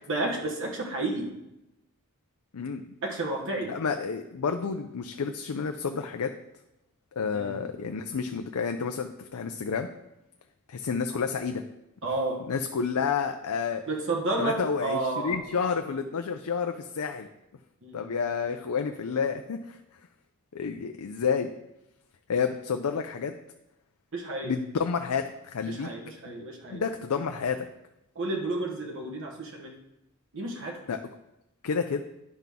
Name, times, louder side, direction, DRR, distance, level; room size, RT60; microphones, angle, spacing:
voice 1, 0.1-1.3 3.0-3.7 7.3-7.7 12.0-12.5 13.9-15.4 17.8-18.1 24.1-24.5 25.7-26.8 28.1-29.8 30.3-30.8, right 2 dB, 55° right, 0 dB, 1.2 m, -31 dB
voice 2, 3.7-6.3 7.2-9.9 10.7-11.6 12.5-13.8 14.4-17.3 17.9-19.8 20.5-21.5 22.3-23.3 24.4-25.9 26.3-27.6 30.9-31.0 31.6-32.0, left 6 dB, 85° left, 6 dB, 0.5 m, -30 dB
10.5 x 5.8 x 3.6 m, 0.89 s
head